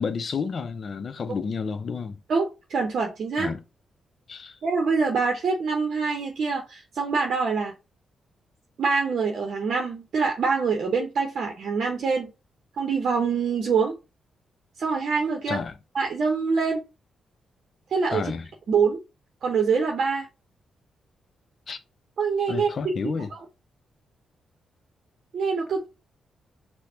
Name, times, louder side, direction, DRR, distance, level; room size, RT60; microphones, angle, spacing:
voice 1, 0.0-2.2 3.4-3.6 4.3-4.6 15.5-15.8 18.1-18.5 21.7-21.8 22.5-23.3, left 5 dB, 55° left, 0.5 m, -31 dB
voice 2, 2.3-3.5 4.6-7.7 8.8-12.3 12.8-13.9 14.8-15.6 15.9-16.8 17.9-18.3 18.7-19.0 19.4-20.3 22.2-22.7 23.0-23.4 25.3-25.9, right 5 dB, 60° right, 0.7 m, -25 dB
5.8 x 2.1 x 2.7 m
hypercardioid pair, 40°, 0 cm